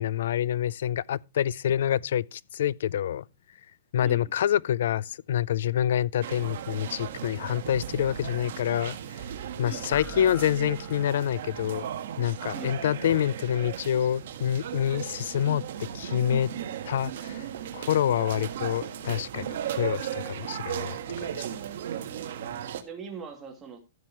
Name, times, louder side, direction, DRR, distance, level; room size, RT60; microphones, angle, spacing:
voice 1, 0.0-3.2 3.9-9.2 9.6-11.9 12.2-15.6 15.9-16.5 16.8-17.5 17.7-21.5, left 10 dB, 70° left, 0.4 m, -27 dB
sound 1, 6.2-22.8, right 9 dB, 65° right, 1.4 m, -36 dB
voice 2, 9.6-9.9 12.5-13.0 22.0-23.8, right 6 dB, 10° right, 2.6 m, -43 dB
sound 2, 9.9-11.5, left 9 dB, 30° left, 0.9 m, -44 dB
14.0 x 7.3 x 3.0 m
hypercardioid pair, 160°, 0 cm